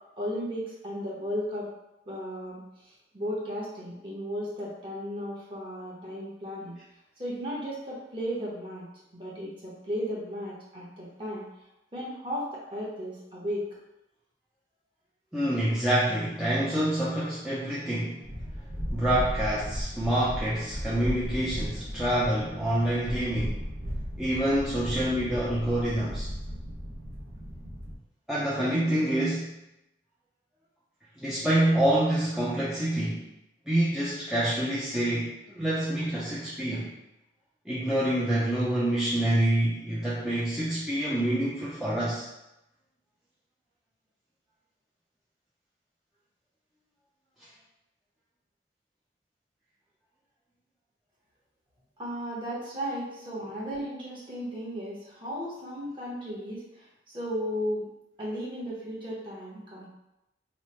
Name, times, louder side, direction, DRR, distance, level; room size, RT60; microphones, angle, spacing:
voice 1, 0.2-1.7 2.1-2.6 3.1-6.8 7.2-8.9 9.1-11.4 11.9-13.7 52.0-57.9 58.2-59.9, equal, 25° right, -6 dB, 0.9 m, -35 dB
voice 2, 15.3-18.2 18.9-23.6 24.2-26.3 28.3-29.5 31.2-33.2 33.7-36.9 37.7-42.3, right 1 dB, ahead, -9 dB, 0.4 m, -27 dB
sound 1, 18.2-27.9, equal, 55° right, 0.9 m, -36 dB
3.1 x 2.1 x 4.2 m, 0.89 s
head